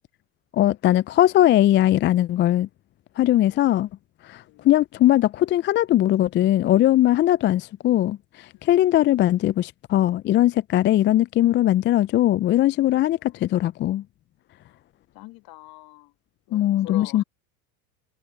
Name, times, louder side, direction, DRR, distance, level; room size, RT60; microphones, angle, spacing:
voice 1, 0.5-2.7 3.2-3.9 4.2-14.0 16.5-17.2, left 13 dB, 25° left, 0.4 m, -20 dB
voice 2, 15.1-16.1 16.5-17.2, left 22 dB, 55° left, 1.6 m, -42 dB
hypercardioid pair, 80°, 44 cm